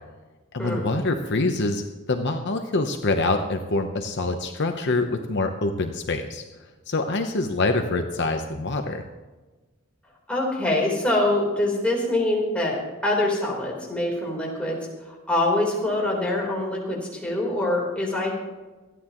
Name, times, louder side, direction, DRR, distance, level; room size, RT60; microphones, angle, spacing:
voice 1, 0.5-6.4 6.9-9.0, left 2 dB, 55° left, 5 dB, 0.9 m, -25 dB
voice 2, 10.3-14.8 15.3-18.3, left 1 dB, 5° left, -3 dB, 3.8 m, -24 dB
26.0 x 9.9 x 3.0 m, 1.3 s
head